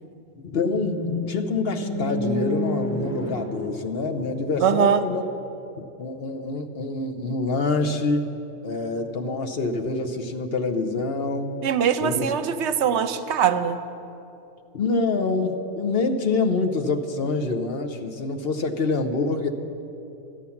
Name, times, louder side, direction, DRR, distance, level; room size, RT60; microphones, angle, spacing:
voice 1, 0.4-5.2 6.0-8.3 8.6-11.6 12.0-12.3 14.7-19.5, left 3 dB, 55° left, 6 dB, 1.0 m, -26 dB
sound 1, 0.7-4.8, left 1 dB, 10° left, 1.0 m, -30 dB
voice 2, 4.6-5.0 11.6-13.8, right 8 dB, 70° right, 10 dB, 0.8 m, -22 dB
13.0 x 10.5 x 7.1 m, 2.9 s
omnidirectional pair, 1.3 m